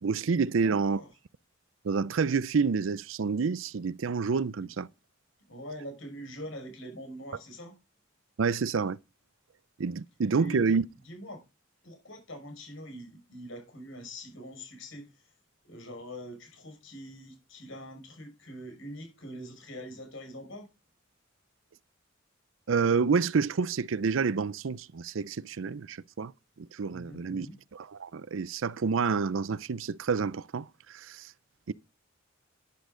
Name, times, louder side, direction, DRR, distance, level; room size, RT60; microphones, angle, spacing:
voice 1, 0.0-1.0 1.8-4.9 8.4-9.0 9.8-10.8 22.7-26.3 26.6-27.5 27.7-31.3 31.7-31.8, right 5 dB, 70° right, 0.5 m, -28 dB
voice 2, 0.6-1.1 4.6-4.7 5.5-7.8 10.4-10.8 11.0-11.4 11.8-15.1 15.6-20.7 26.9-27.5, equal, 65° left, 6.0 m, -43 dB
11.5 x 10.5 x 3.8 m
head